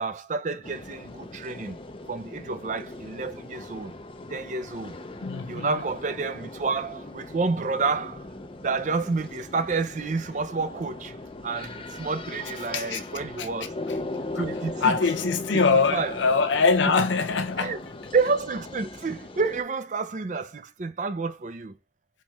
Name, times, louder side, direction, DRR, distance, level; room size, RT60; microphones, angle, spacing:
voice 1, 0.0-1.8 2.1-3.9 4.3-5.0 5.5-8.3 8.6-11.1 11.4-13.8 14.4-15.0 15.5-16.2 16.9-17.0 17.6-17.8 18.1-21.8, right 4 dB, 40° right, 0.5 m, -29 dB
sound 1, 0.6-19.6, left 2 dB, 30° left, 0.5 m, -39 dB
voice 2, 5.2-5.7 12.7-13.0 13.4-13.5 14.3-14.4 14.8-17.7, left 4 dB, 85° left, 0.6 m, -23 dB
4.5 x 3.2 x 3.5 m
head